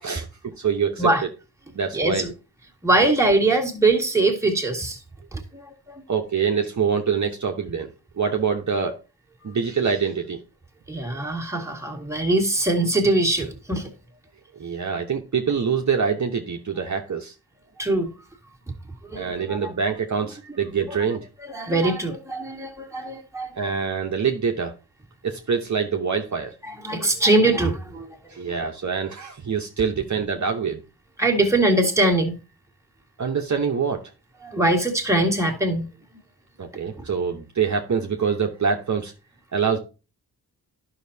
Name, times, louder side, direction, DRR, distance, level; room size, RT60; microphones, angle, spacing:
voice 1, 0.0-1.1 1.7-2.3 6.1-9.0 9.4-10.4 14.6-17.3 19.1-21.3 23.5-24.7 25.2-26.5 28.3-30.8 33.2-34.0 36.6-39.1 39.5-39.8, right 6 dB, 50° right, 1.0 m, -25 dB
voice 2, 1.9-2.3 2.8-5.0 5.3-6.0 9.4-9.6 10.9-13.9 17.8-18.1 19.0-19.7 20.9-21.0 21.4-23.5 26.6-28.5 31.2-32.3 34.4-35.9, right 2 dB, 10° right, 1.9 m, -22 dB
11.5 x 5.8 x 2.8 m
wide cardioid pair, 75°, 38 cm